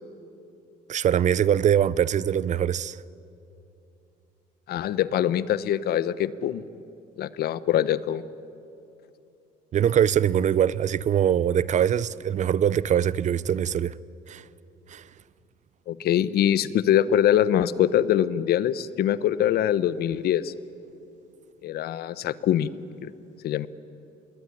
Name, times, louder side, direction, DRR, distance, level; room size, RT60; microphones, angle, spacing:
voice 1, 0.9-3.0 9.7-13.9 14.3-14.4 14.9-15.0, right 9 dB, 45° right, 0.6 m, -22 dB
voice 2, 4.7-6.6 7.2-8.2 15.9-20.5 21.6-22.7 23.0-23.1 23.4-23.7, left 11 dB, 70° left, 1.0 m, -23 dB
26.5 x 21.5 x 10.0 m
cardioid pair, 110°, 17 cm